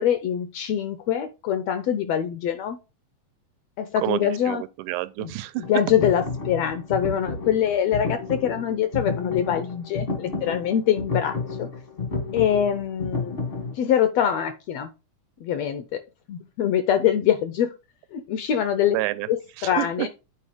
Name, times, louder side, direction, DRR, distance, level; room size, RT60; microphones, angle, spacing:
voice 1, 0.0-2.8 3.8-4.6 5.2-5.3 5.7-11.7 12.3-13.4 13.7-14.9 15.4-16.0 16.3-17.7 18.1-18.9 19.3-20.1, left 9 dB, 80° left, 1.5 m, -24 dB
voice 2, 4.0-5.7 18.9-19.3 19.6-20.1, right 17 dB, 85° right, 2.1 m, -28 dB
sound 1, 5.6-13.7, left 4 dB, 50° left, 0.6 m, -31 dB
8.5 x 4.4 x 4.9 m
omnidirectional pair, 3.6 m